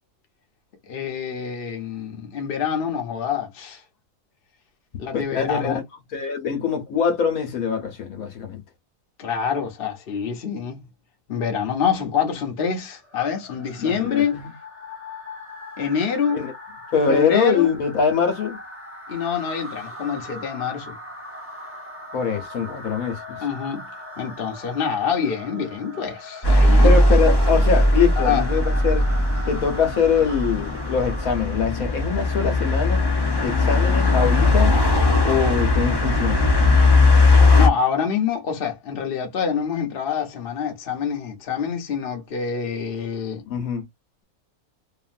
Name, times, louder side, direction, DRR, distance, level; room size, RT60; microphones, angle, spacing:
voice 1, 0.9-3.8 5.0-5.8 9.2-10.8 11.3-14.4 15.8-16.4 17.1-17.7 19.1-21.0 23.4-23.9 24.2-26.9 28.2-28.5 37.5-43.4, left 7 dB, 45° left, 1.0 m, -26 dB
voice 2, 5.1-5.8 6.1-8.6 13.8-14.5 16.3-16.5 16.9-18.6 22.1-23.4 26.8-29.0 29.5-33.0 33.4-34.7 35.2-36.5 43.5-43.9, left 6 dB, 75° left, 1.3 m, -23 dB
sound 1, 13.0-31.9, equal, 10° right, 0.8 m, -40 dB
sound 2, 26.4-37.7, left 2 dB, 30° left, 0.5 m, -18 dB
2.9 x 2.5 x 2.5 m
omnidirectional pair, 1.5 m